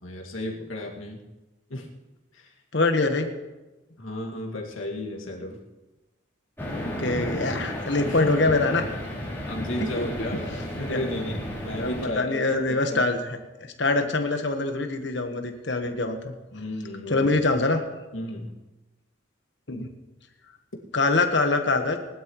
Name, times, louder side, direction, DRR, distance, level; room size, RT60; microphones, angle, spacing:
voice 1, 0.0-1.2 1.7-1.9 2.3-2.5 4.0-5.6 8.0-8.5 9.5-13.1 16.5-17.4 18.1-18.6, left 1 dB, 90° left, 0 dB, 2.2 m, -34 dB
voice 2, 2.7-3.3 6.7-8.8 10.9-11.0 11.7-13.2 13.8-16.3 17.1-17.8 19.7-19.9 20.9-22.0, left 3 dB, 60° left, 5 dB, 1.4 m, -24 dB
sound 1, 6.6-12.1, equal, 10° left, 2.9 m, -33 dB
20.0 x 12.0 x 3.2 m, 1.1 s
head